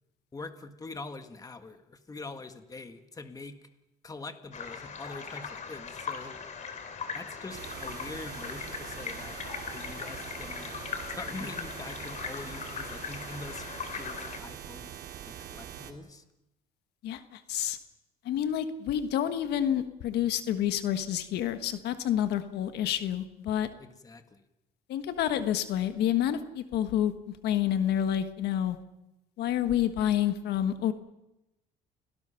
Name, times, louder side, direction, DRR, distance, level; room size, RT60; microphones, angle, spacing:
voice 1, 0.3-3.6 4.0-6.4 7.1-9.4 9.7-10.7 11.1-13.7 13.9-14.9 15.3-16.2 23.8-24.4, left 3 dB, 20° left, 8 dB, 1.8 m, -44 dB
sound 1, 4.5-14.4, left 6 dB, 45° left, 3.3 m, -39 dB
sound 2, 7.5-15.9, right 9 dB, 70° right, 2.7 m, -43 dB
voice 2, 17.0-17.8 18.2-23.7 24.9-28.8 29.4-30.9, left 10 dB, 75° left, 9 dB, 1.5 m, -28 dB
30.0 x 18.5 x 5.8 m, 0.92 s
cardioid pair, 110°, 17 cm